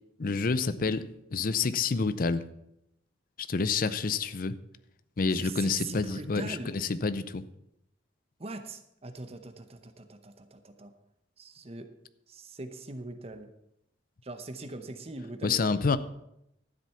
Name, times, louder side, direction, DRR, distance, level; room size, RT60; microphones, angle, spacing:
voice 1, 0.2-1.0 1.3-2.4 3.4-4.6 5.2-7.4 15.4-16.0, left 4 dB, 50° left, 14 dB, 0.6 m, -28 dB
voice 2, 5.3-6.7 8.4-10.9 11.4-11.9 12.3-13.5 14.2-15.9, right 2 dB, 35° right, 8 dB, 0.8 m, -42 dB
12.5 x 7.6 x 5.7 m, 0.81 s
head